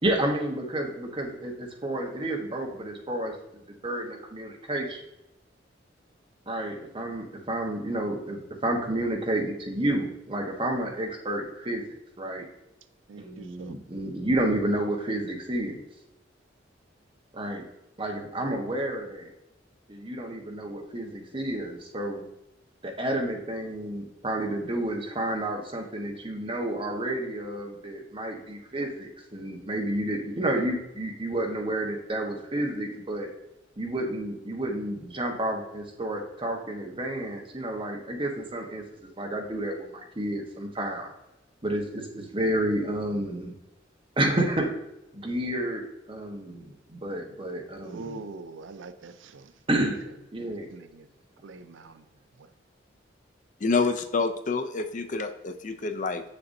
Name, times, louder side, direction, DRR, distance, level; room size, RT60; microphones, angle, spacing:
voice 1, 0.0-3.3 3.7-5.0 6.5-11.8 12.2-12.5 13.2-15.8 17.3-17.6 18.0-19.3 19.9-22.2 22.8-33.3 33.8-41.1 41.6-43.5 44.2-44.7 45.1-48.2 49.7-50.0 50.3-50.7, right 1 dB, 30° right, 1 dB, 1.1 m, -30 dB
voice 2, 13.1-13.7 47.8-49.5 50.4-51.1 51.4-52.1 52.4-52.5, right 3 dB, 85° right, 11 dB, 0.5 m, -43 dB
voice 3, 53.6-56.2, left 4 dB, 40° left, 9 dB, 0.5 m, -27 dB
6.9 x 6.7 x 2.6 m, 0.89 s
head